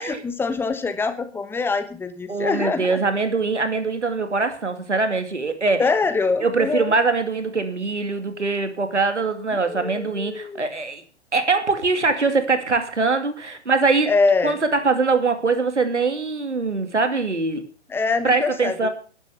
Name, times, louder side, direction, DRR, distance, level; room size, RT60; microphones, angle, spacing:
voice 1, 0.0-3.0 5.8-6.9 9.7-10.6 14.1-14.6 17.9-18.9, left 4 dB, 5° left, 11 dB, 1.2 m, -24 dB
voice 2, 2.3-5.9 6.4-11.0 11.3-14.1 14.4-17.7 18.2-18.9, right 4 dB, 80° right, 8 dB, 2.6 m, -22 dB
11.5 x 10.5 x 7.1 m, 0.40 s
figure-of-eight pair, 120°, 35 cm